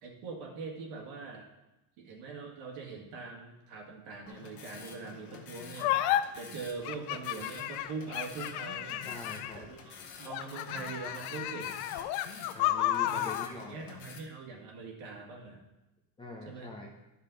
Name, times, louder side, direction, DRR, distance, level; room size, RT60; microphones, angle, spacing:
voice 1, 0.0-1.5 2.0-6.0 6.4-9.1 9.6-11.7 13.0-13.3 13.7-15.6 16.5-16.7, right 4 dB, 75° right, 0 dB, 2.1 m, -42 dB
sound 1, 4.3-14.2, left 6 dB, 45° left, 1.2 m, -49 dB
sound 2, 5.8-6.2 6.8-9.7 10.3-13.5, left 13 dB, 85° left, 0.7 m, -32 dB
voice 2, 9.0-9.6 12.5-13.7 16.2-16.9, left 3 dB, 10° left, -2 dB, 0.6 m, -43 dB
11.5 x 5.6 x 3.9 m, 0.98 s
cardioid pair, 165°, 49 cm